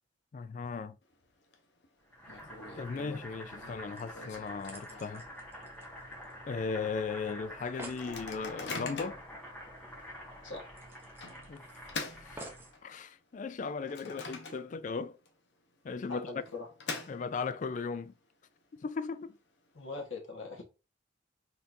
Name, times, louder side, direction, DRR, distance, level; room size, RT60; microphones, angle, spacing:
voice 1, 0.3-1.0 2.8-5.3 6.5-9.2 11.5-11.6 12.2-12.5 12.8-15.2 15.8-16.3 17.1-18.1 18.8-19.4, left 4 dB, 40° left, 0.3 m, -37 dB
Microwave oven, 1.0-1.5 1.8-1.9 2.3-5.3 5.8-5.9 6.1-6.5 7.0-7.1 7.8-9.3 9.9-10.1 11.2-13.0 13.5-15.0 15.3-15.4 16.2-17.6, left 4 dB, 65° left, 0.8 m, -43 dB
Boiling, 2.1-12.8, equal, 5° left, 1.7 m, -48 dB
sound 1, 4.0-6.6 6.9-7.0 7.3-7.4 7.6-8.1 9.6-9.7 10.0-10.1 10.8-11.8 12.4-12.8 13.5-13.6, right 1 dB, 10° right, 0.7 m, -50 dB
voice 2, 16.1-16.7 19.7-20.6, left 3 dB, 85° left, 1.5 m, -41 dB
4.3 x 3.9 x 2.6 m
head